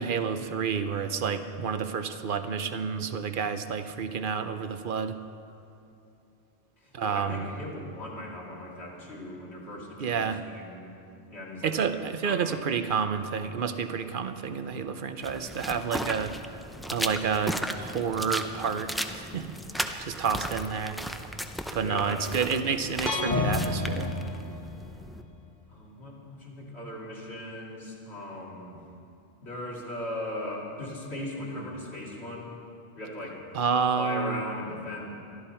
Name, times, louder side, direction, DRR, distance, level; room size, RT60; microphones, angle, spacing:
voice 1, 0.0-5.2 6.9-7.5 10.0-10.4 11.6-16.3 16.9-19.5 20.0-21.0 21.7-24.1 33.5-34.4, right 6 dB, 55° right, 10 dB, 0.8 m, -29 dB
voice 2, 6.8-10.9 11.3-11.8 12.2-12.5 14.6-14.8 21.8-22.3 25.7-28.8 29.4-32.6 33.0-33.4 33.9-35.1, left 1 dB, 70° left, -5 dB, 2.9 m, -38 dB
sound 1, 15.2-25.2, equal, ahead, 0.4 m, -36 dB
sound 2, 23.1-25.1, left 2 dB, 40° left, 1.5 m, -29 dB
23.0 x 13.0 x 4.4 m, 2.7 s
omnidirectional pair, 1.1 m